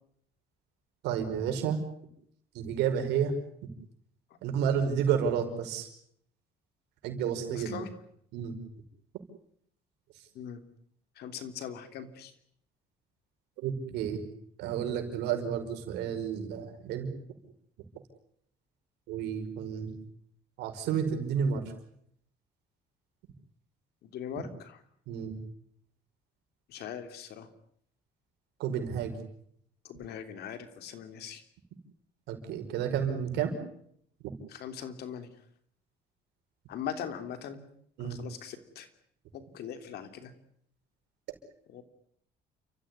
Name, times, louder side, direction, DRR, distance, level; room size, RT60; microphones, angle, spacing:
voice 1, 1.0-1.8 2.5-3.3 4.4-5.9 7.0-7.8 8.3-8.5 13.6-14.2 14.6-17.1 19.1-20.0 20.6-21.6 25.1-25.4 28.6-29.1 32.3-33.5 38.0-38.2, right 8 dB, 90° right, 5 dB, 5.4 m, -31 dB
voice 2, 7.5-7.9 10.3-10.6 11.2-12.3 24.1-24.8 26.7-27.5 29.9-31.4 34.5-35.3 36.7-37.6 38.0-38.9 39.5-40.3 41.7-41.8, left 8 dB, 70° left, 9 dB, 3.2 m, -40 dB
30.0 x 15.0 x 9.8 m, 0.69 s
cardioid pair, 110°, 17 cm